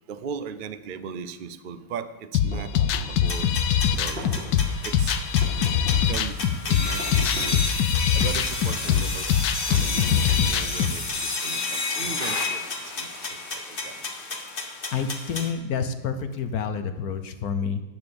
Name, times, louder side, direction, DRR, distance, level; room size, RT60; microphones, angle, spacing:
voice 1, 0.1-2.7 3.1-3.5 3.8-4.3 4.8-5.2 5.8-6.4 6.6-7.6 8.1-9.4 9.6-12.6 13.0-14.1, right 7 dB, 90° right, 12 dB, 0.4 m, -37 dB
sound 1, 2.3-10.9, left 8 dB, 85° left, 1.3 m, -23 dB
sound 2, 2.5-3.2 3.9-4.7 5.4-6.2 7.0-7.7 8.4-9.0 9.8-10.7, equal, 30° right, 3.8 m, -40 dB
sound 3, 3.3-15.5, left 3 dB, 35° left, 1.4 m, -31 dB
voice 2, 14.9-17.8, left 6 dB, 65° left, 9 dB, 1.2 m, -28 dB
10.5 x 9.0 x 6.9 m, 1.1 s
omnidirectional pair, 1.9 m